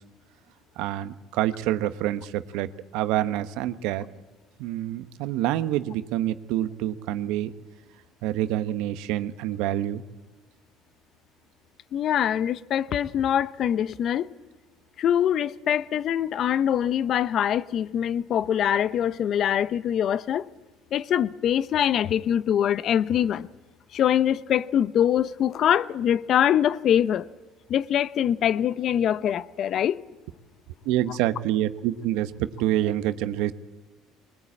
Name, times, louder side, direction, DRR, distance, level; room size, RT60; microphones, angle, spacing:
voice 1, 0.8-4.1 4.6-7.5 8.2-10.0 30.8-33.5, right 13 dB, 75° right, 1.0 m, -27 dB
voice 2, 11.9-14.3 15.0-20.4 20.9-23.5 23.9-27.2 27.7-30.0, left 10 dB, 55° left, 0.7 m, -23 dB
21.0 x 20.0 x 8.6 m
supercardioid pair, 85°, 0 cm